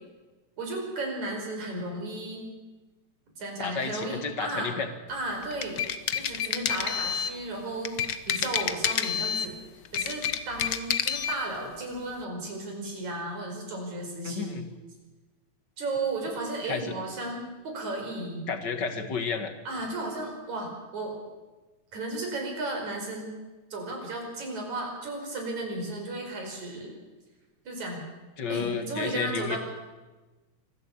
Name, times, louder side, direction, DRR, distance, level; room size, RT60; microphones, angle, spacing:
voice 1, 0.6-2.5 3.4-4.7 5.1-5.8 6.1-8.0 8.3-9.6 9.9-14.6 15.8-18.5 19.6-21.2 21.9-23.3 23.7-26.9 27.7-28.0 28.5-29.6, right 2 dB, 70° right, 2 dB, 6.4 m, -34 dB
voice 2, 3.6-4.9 14.2-14.6 16.6-16.9 18.5-19.5 28.4-29.6, left 5 dB, 40° left, 8 dB, 2.1 m, -31 dB
sound 1, 5.4-7.4 7.8-9.5 9.8-11.4, left 8 dB, 75° left, 1.0 m, -29 dB
25.0 x 16.0 x 8.5 m, 1.2 s
omnidirectional pair, 3.4 m